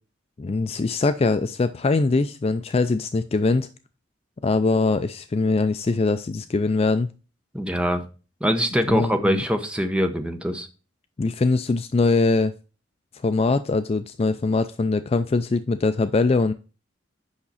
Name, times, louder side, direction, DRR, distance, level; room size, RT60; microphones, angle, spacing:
voice 1, 0.4-3.7 4.4-7.1 8.9-9.4 11.2-12.5 13.2-16.5, left 3 dB, 30° left, 0.3 m, -22 dB
voice 2, 7.5-8.0 8.4-10.7, equal, 5° right, 0.9 m, -23 dB
8.6 x 5.8 x 4.1 m
head